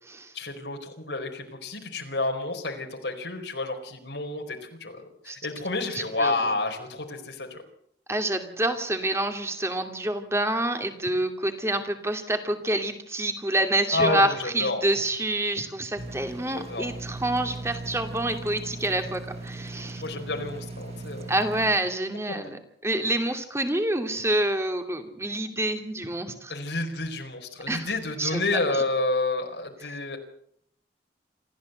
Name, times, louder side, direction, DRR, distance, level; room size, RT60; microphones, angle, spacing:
voice 1, 0.3-7.6 13.9-14.8 16.4-16.9 20.0-21.3 26.5-30.2, left 2 dB, 85° left, 3 dB, 4.5 m, -30 dB
voice 2, 5.9-6.3 8.1-20.0 21.3-26.5 27.7-27.9 28.2-28.4 28.7-28.8, right 1 dB, 15° right, 6 dB, 2.6 m, -27 dB
sound 1, 16.0-21.7, right 2 dB, 35° right, 4.4 m, -38 dB
27.5 x 14.0 x 8.1 m, 0.70 s
head